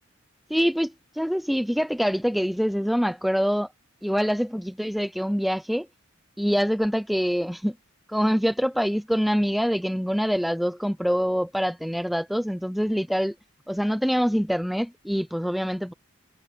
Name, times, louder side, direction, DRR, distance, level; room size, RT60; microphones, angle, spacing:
voice 1, 0.5-3.7 4.0-5.9 6.4-7.7 8.1-13.3 13.7-15.9, equal, ahead, 0.5 m, -25 dB
head